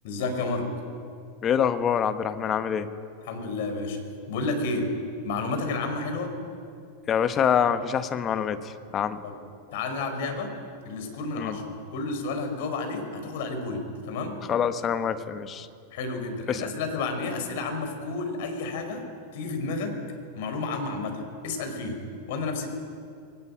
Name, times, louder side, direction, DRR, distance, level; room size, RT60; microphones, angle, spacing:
voice 1, 0.0-0.7 3.2-4.0 4.3-4.9 5.2-6.3 9.2-9.4 9.7-10.5 10.8-14.4 15.9-19.1 19.3-20.0 20.3-22.0 22.3-22.7, left 3 dB, 50° left, 5 dB, 4.8 m, -31 dB
voice 2, 1.4-2.9 7.1-8.6 8.9-9.2 11.4-11.6 14.5-15.7 16.5-16.7, left 8 dB, 25° left, 10 dB, 1.4 m, -25 dB
21.0 x 18.0 x 8.9 m, 2.3 s
figure-of-eight pair, 90°, 0 cm